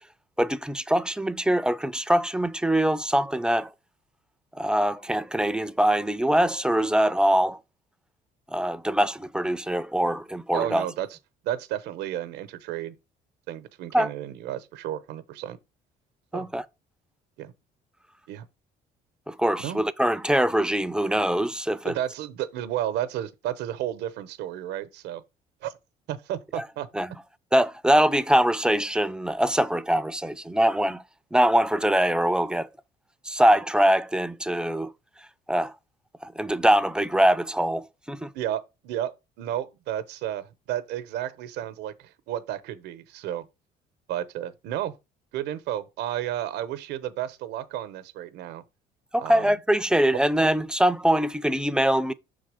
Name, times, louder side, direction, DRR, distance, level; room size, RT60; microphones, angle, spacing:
voice 1, 0.4-3.7 4.5-7.6 8.5-10.9 13.9-14.1 16.3-16.6 19.3-21.9 26.5-26.6 26.9-27.1 27.5-31.0 31.3-32.7 33.3-34.9 35.5-35.7 36.2-38.3 49.1-52.1, right 1 dB, 5° right, 0.4 m, -23 dB
voice 2, 10.5-11.1 11.4-12.9 13.5-15.6 16.3-16.5 17.4-17.5 18.3-18.5 19.6-19.8 21.8-25.2 25.6-25.7 26.1-26.9 38.3-43.5 44.1-44.9 45.3-48.6 49.2-49.5, right 12 dB, 85° right, 0.8 m, -32 dB
5.9 x 3.8 x 4.9 m
cardioid pair, 110°, 17 cm